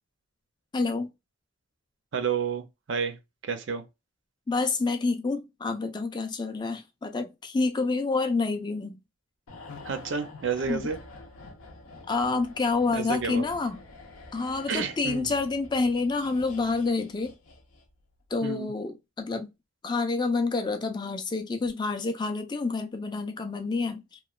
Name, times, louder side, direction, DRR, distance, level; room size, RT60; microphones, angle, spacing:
voice 1, 0.7-1.1 4.5-9.0 10.7-10.9 12.1-13.8 14.3-17.3 18.3-19.5 19.8-24.2, left 3 dB, 20° left, 0.3 m, -28 dB
voice 2, 2.1-3.2 3.5-3.8 9.9-11.0 12.9-13.4 14.7-15.3 18.4-18.7, right 6 dB, 60° right, 0.5 m, -30 dB
sound 1, 9.5-18.0 18.3-18.5, left 3 dB, 90° left, 0.6 m, -47 dB
3.0 x 2.1 x 2.3 m
head